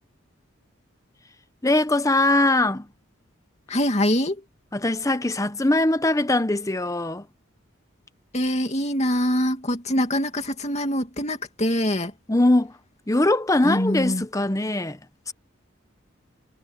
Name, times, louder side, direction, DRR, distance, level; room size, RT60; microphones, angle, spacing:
voice 1, 1.6-2.9 4.7-7.3 12.3-12.7 13.1-15.0 15.3-15.4, left 2 dB, 15° left, 0.9 m, -21 dB
voice 2, 3.7-4.4 8.3-12.1 13.6-14.2, equal, 35° left, 2.6 m, -24 dB
head